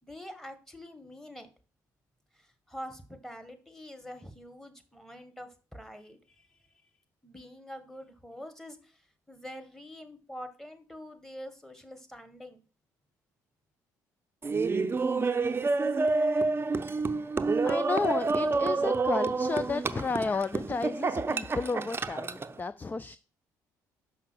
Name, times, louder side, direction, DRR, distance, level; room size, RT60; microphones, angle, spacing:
voice 1, 0.0-1.5 2.3-6.9 7.2-12.6, equal, 5° left, 1.6 m, -46 dB
Laughter, 14.4-22.5, right 3 dB, 30° right, 0.6 m, -28 dB
voice 2, 17.6-23.2, left 4 dB, 20° left, 0.4 m, -32 dB
5.8 x 5.7 x 6.2 m
hypercardioid pair, 60°, 8 cm